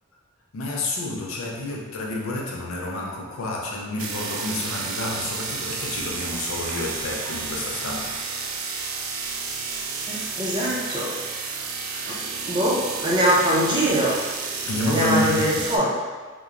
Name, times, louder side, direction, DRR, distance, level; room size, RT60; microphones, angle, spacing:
voice 1, 0.5-8.1 11.9-12.3 14.6-15.7, left 2 dB, 80° left, -2 dB, 0.5 m, -29 dB
sound 1, 4.0-15.8, right 4 dB, 80° right, 0.3 m, -31 dB
voice 2, 10.1-11.1 12.1-12.2 12.5-14.1 14.9-15.9, equal, 20° right, -6 dB, 0.5 m, -22 dB
2.8 x 2.1 x 2.4 m, 1.4 s
head